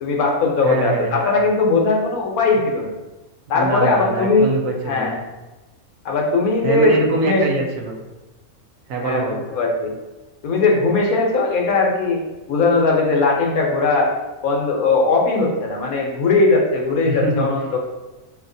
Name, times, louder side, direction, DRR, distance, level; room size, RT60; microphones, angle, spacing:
voice 1, 0.0-2.9 3.5-4.5 4.9-5.2 6.0-7.4 9.0-9.9 10.4-12.2 12.5-14.1 14.4-17.8, left 3 dB, 75° left, 0 dB, 1.2 m, -19 dB
voice 2, 0.6-1.2 3.5-5.2 6.6-8.0 8.9-9.4 17.0-17.5, right 2 dB, 70° right, 1 dB, 1.0 m, -24 dB
5.5 x 2.8 x 2.6 m, 1.1 s
omnidirectional pair, 1.6 m